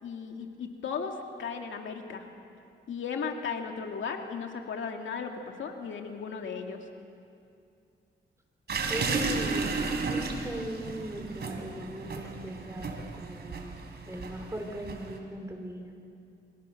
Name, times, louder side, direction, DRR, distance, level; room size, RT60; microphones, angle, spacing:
voice 1, 0.0-2.3 2.9-6.8 9.0-9.2, left 6 dB, 80° left, 3 dB, 2.2 m, -36 dB
sound 1, 8.7-15.2, right 4 dB, 60° right, 3.5 m, -33 dB
voice 2, 8.9-9.7 10.1-13.8 14.0-15.9, right 1 dB, 15° right, 2 dB, 4.7 m, -39 dB
28.0 x 25.0 x 6.4 m, 2.5 s
cardioid pair, 90°, 19 cm